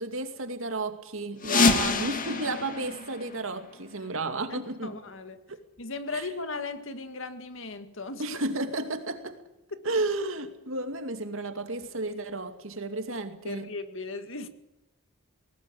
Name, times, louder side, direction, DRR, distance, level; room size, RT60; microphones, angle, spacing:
voice 1, 0.0-5.0 6.1-6.3 8.2-9.4 9.8-13.7, right 2 dB, 65° right, 2.5 m, -32 dB
sound 1, 1.4-4.0, left 4 dB, 40° left, 2.2 m, -27 dB
voice 2, 4.5-5.4 5.8-8.2 9.7-9.8 13.4-14.5, left 3 dB, 65° left, 1.9 m, -37 dB
20.0 x 19.5 x 8.7 m
head